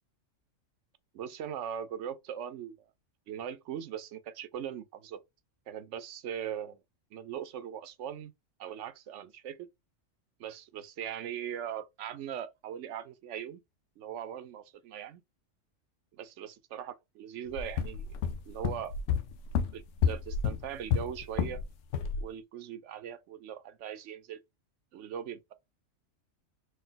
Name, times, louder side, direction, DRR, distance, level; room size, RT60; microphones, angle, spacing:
voice 1, 1.1-2.8 3.3-5.2 5.7-6.8 7.1-8.3 8.6-9.7 10.4-13.6 14.0-15.2 16.2-18.1 18.5-19.0 19.7-21.6 22.2-24.4 24.9-25.5, right 9 dB, 70° right, 0.9 m, -40 dB
sound 1, 17.5-21.6 21.9-22.2, left 7 dB, 80° left, 0.9 m, -30 dB
4.0 x 2.3 x 3.8 m
omnidirectional pair, 1.3 m